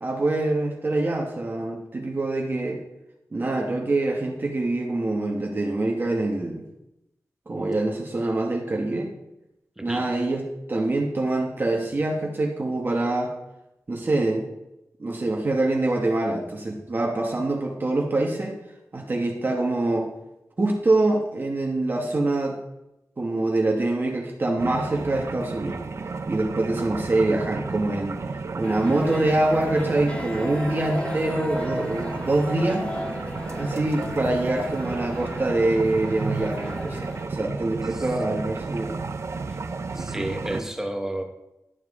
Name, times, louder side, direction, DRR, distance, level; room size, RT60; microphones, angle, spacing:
voice 1, 0.0-2.8 3.3-6.6 7.5-9.1 9.8-13.4 13.9-14.5 15.0-18.6 18.9-20.1 20.6-22.6 23.2-25.8 26.3-28.2 28.6-32.9 33.5-39.0 39.9-40.1 40.5-40.6, right 2 dB, 35° right, 0 dB, 1.1 m, -25 dB
sound 1, 24.6-40.6, right 4 dB, 55° right, 0.5 m, -32 dB
sound 2, 28.6-37.3, left 1 dB, 20° left, 0.9 m, -35 dB
voice 2, 39.9-41.2, right 1 dB, 10° right, 4 dB, 1.1 m, -31 dB
11.0 x 7.3 x 3.6 m, 0.90 s
wide cardioid pair, 125°, 6 cm